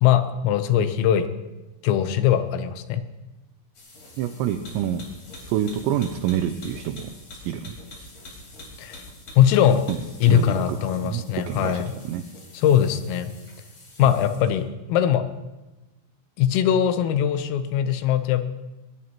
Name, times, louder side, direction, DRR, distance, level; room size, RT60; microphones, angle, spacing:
voice 1, 0.0-1.3 1.8-3.0 8.8-9.1 9.4-9.8 10.2-11.9 12.5-13.3 14.0-15.2 16.4-18.5, left 10 dB, 85° left, 10 dB, 3.5 m, -21 dB
sound 1, 3.7-14.6, left 1 dB, 35° left, 4.5 m, -45 dB
voice 2, 4.2-5.0 5.5-7.1 7.5-7.8 9.9-10.0 10.3-12.2 14.0-14.1, right 10 dB, 90° right, 8 dB, 2.5 m, -27 dB
22.0 x 20.5 x 3.0 m, 1.1 s
omnidirectional pair, 5.9 m